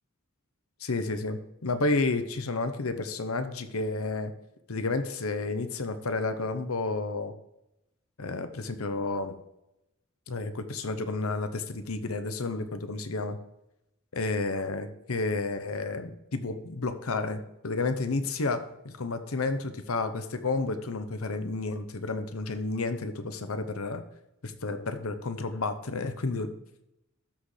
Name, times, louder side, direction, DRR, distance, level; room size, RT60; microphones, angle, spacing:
voice 1, 0.8-4.3 4.7-7.3 8.2-9.3 10.3-13.4 14.1-24.0 24.4-26.5, left 3 dB, 85° left, 10 dB, 0.9 m, -31 dB
13.0 x 6.3 x 3.3 m, 0.88 s
head